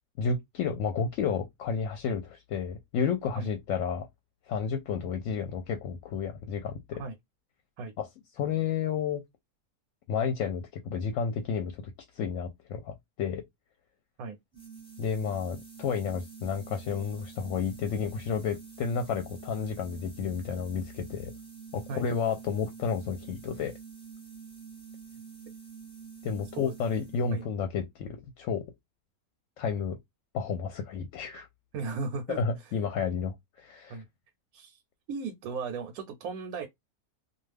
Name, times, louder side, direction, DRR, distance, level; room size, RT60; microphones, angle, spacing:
voice 1, 0.2-4.1 4.5-7.0 8.0-8.1 8.3-9.2 10.1-11.8 12.1-13.4 15.0-21.3 21.7-23.7 26.2-28.6 29.6-30.0 30.3-31.5 32.3-34.0, left 6 dB, 70° left, 0.9 m, -31 dB
sound 1, 14.5-27.5, right 6 dB, 5° left, 0.9 m, -47 dB
voice 2, 31.7-32.4 33.9-34.1 34.5-34.8 35.1-36.7, right 4 dB, 80° right, 1.0 m, -36 dB
2.4 x 2.3 x 3.2 m
omnidirectional pair, 1.5 m